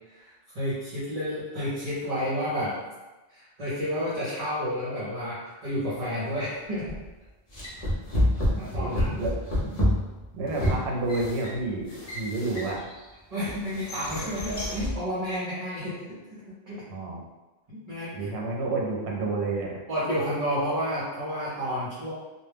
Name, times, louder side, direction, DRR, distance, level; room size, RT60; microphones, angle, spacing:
voice 1, 0.1-2.8 3.3-6.9 8.6-9.2 13.3-16.9 17.7-18.3 19.9-22.1, equal, 40° right, -9 dB, 0.7 m, -31 dB
sound 1, 6.9-7.1 7.5-13.0 13.4-15.0, left 1 dB, 40° left, 0.7 m, -29 dB
voice 2, 8.7-9.4 10.3-12.8 16.9-17.2 18.1-19.8, right 2 dB, 75° right, -1 dB, 0.8 m, -30 dB
2.2 x 2.1 x 3.3 m, 1.1 s
omnidirectional pair, 1.1 m